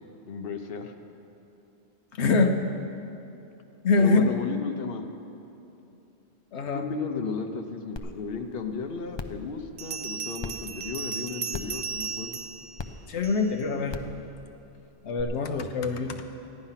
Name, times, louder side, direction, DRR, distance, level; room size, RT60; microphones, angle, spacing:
voice 1, 0.3-0.9 4.0-5.0 6.7-12.5, left 5 dB, 60° left, 5 dB, 1.0 m, -34 dB
voice 2, 2.2-2.6 3.8-4.3 6.5-6.9 13.1-14.0 15.0-16.2, left 3 dB, 85° left, 5 dB, 1.1 m, -24 dB
sound 1, 8.0-8.1 8.5-8.6 9.1-9.4 10.4-10.5 11.5-11.8 12.8-12.9 13.9-14.1 15.2-15.3, left 4 dB, 35° left, 0.5 m, -35 dB
Bell, 9.8-13.7, right 6 dB, 45° right, 0.7 m, -36 dB
14.5 x 10.5 x 5.7 m, 2.8 s
omnidirectional pair, 1.1 m